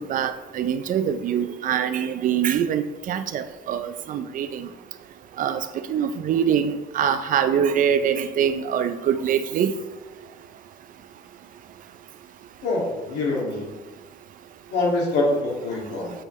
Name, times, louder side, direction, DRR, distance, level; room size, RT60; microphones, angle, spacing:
voice 1, 0.0-4.7 5.4-5.6 5.9-9.7, right 8 dB, 55° right, 11 dB, 0.5 m, -24 dB
voice 2, 12.6-13.8 14.7-16.1, left 2 dB, 80° left, -3 dB, 2.2 m, -25 dB
8.4 x 5.3 x 3.1 m, 1.2 s
cardioid pair, 110°, 17 cm